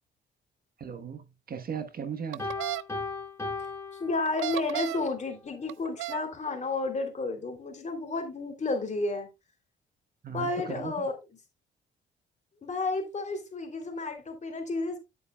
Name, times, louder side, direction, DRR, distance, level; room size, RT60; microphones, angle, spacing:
voice 1, 0.8-2.5 10.2-11.1, right 7 dB, 50° right, 1.2 m, -37 dB
sound 1, 2.3-2.8 4.3-5.1 5.7-6.2, right 17 dB, 90° right, 0.4 m, -33 dB
Piano, 2.4-4.8, left 3 dB, 15° left, 4.6 m, -37 dB
voice 2, 4.0-9.3 10.3-11.1 12.6-15.0, left 3 dB, 35° left, 3.0 m, -31 dB
10.0 x 8.3 x 2.3 m
cardioid pair, 90°, 20 cm